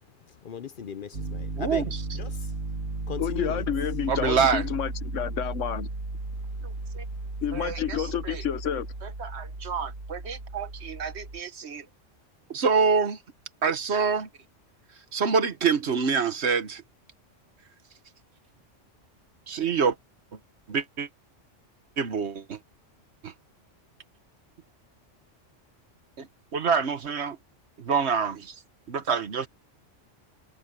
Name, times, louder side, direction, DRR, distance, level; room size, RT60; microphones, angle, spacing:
voice 1, 0.4-1.9 2.1-2.5 3.1-3.7, left 7 dB, 55° left, 0.7 m, -37 dB
Piano, 1.1-11.4, right 2 dB, 90° right, 3.1 m, -35 dB
voice 2, 1.6-2.0 4.1-4.6 6.6-7.0 7.5-8.4 9.0-11.9 12.5-13.2 13.6-14.3 15.1-16.8 19.5-19.9 20.7-21.1 22.0-22.6 23.2-23.3 26.2-26.3 26.5-27.4 27.8-28.5 28.9-29.5, right 5 dB, 65° right, 1.4 m, -26 dB
voice 3, 3.2-5.9 7.4-8.9, left 9 dB, 85° left, 1.3 m, -29 dB
omnidirectional pair, 1.3 m